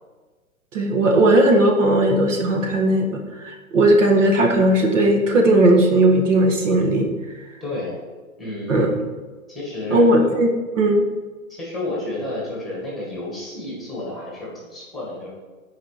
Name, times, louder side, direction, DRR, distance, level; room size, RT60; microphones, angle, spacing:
voice 1, 0.7-7.1 8.7-9.0 9.9-10.5 10.8-11.1, right 1 dB, 60° right, 2 dB, 1.7 m, -17 dB
voice 2, 7.6-8.0 8.4-8.9 9.5-10.1 11.5-15.3, left 2 dB, ahead, -5 dB, 1.8 m, -30 dB
10.0 x 5.0 x 5.0 m, 1.3 s
hypercardioid pair, 160°, 42 cm